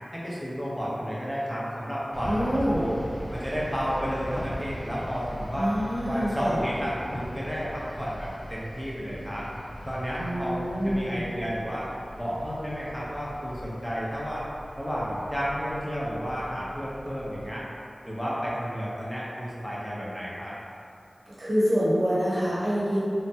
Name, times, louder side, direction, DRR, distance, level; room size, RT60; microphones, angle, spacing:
voice 1, 0.1-3.0 3.3-5.7 6.1-9.4 9.9-11.9 12.2-14.4 14.8-17.6 18.0-20.5, equal, 5° left, -7 dB, 0.8 m, -32 dB
sound 1, 2.1-17.5, equal, 40° left, 0.3 m, -40 dB
voice 2, 2.3-2.9 5.5-6.6 10.2-11.2 21.3-23.0, equal, 65° right, -9 dB, 1.0 m, -26 dB
3.2 x 2.2 x 2.8 m, 2.5 s
wide cardioid pair, 45°, 0 cm